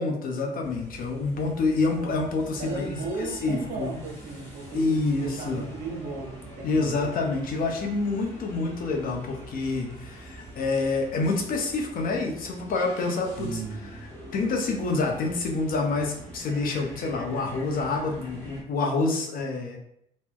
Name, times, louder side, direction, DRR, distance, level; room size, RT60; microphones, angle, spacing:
voice 1, 0.0-2.9 3.2-3.9 4.7-5.6 6.6-13.6 14.3-19.8, left 3 dB, 55° left, 2 dB, 0.9 m, -27 dB
sound 1, 0.6-18.6, equal, 15° left, 1.4 m, -45 dB
voice 2, 1.8-2.2 2.6-7.1 13.4-14.0, right 3 dB, 50° right, 0 dB, 1.2 m, -36 dB
3.0 x 2.8 x 3.6 m, 0.71 s
cardioid pair, 110°, 17 cm